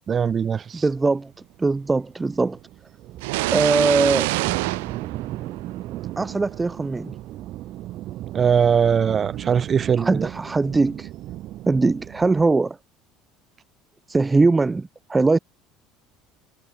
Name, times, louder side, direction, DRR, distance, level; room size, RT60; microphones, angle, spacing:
voice 1, 0.1-0.8 8.3-10.3, right 7 dB, 35° right, 1.1 m, -21 dB
voice 2, 0.8-1.3 1.6-2.6 3.5-4.3 6.2-7.2 10.0-11.1 11.7-12.8 14.1-15.4, right 3 dB, 15° right, 0.4 m, -21 dB
sound 1, 0.9-12.5, right 15 dB, 60° right, 1.7 m, -36 dB
sound 2, 3.2-6.0, right 23 dB, 85° right, 1.7 m, -26 dB
supercardioid pair, 105°, 0 cm